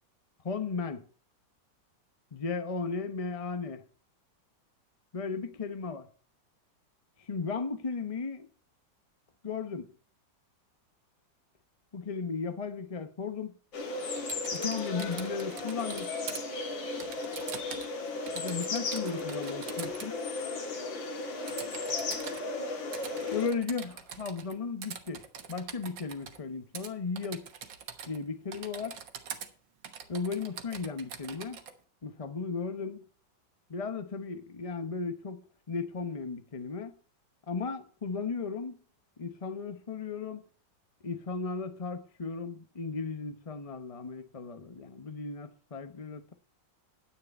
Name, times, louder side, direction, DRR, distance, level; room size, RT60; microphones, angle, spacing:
voice 1, 0.4-1.0 2.3-3.8 5.1-6.0 7.2-8.5 9.4-9.9 11.9-13.5 14.5-16.1 18.3-20.2 23.3-27.4 28.1-29.0 30.1-31.6 32.0-33.0 33.7-36.9 37.5-38.8 39.2-40.4 41.0-46.3, left 5 dB, 35° left, 0.6 m, -35 dB
sound 1, 13.7-23.5, left 3 dB, 85° left, 2.8 m, -35 dB
Typing, 14.2-16.4 17.0-18.0 18.3-20.1 21.5-22.4 22.9-24.5 24.8-26.4 26.8-26.9 27.2-28.2 28.5-29.5 29.8-31.7, right 7 dB, 80° right, 1.9 m, -44 dB
10.5 x 9.7 x 4.3 m
omnidirectional pair, 2.0 m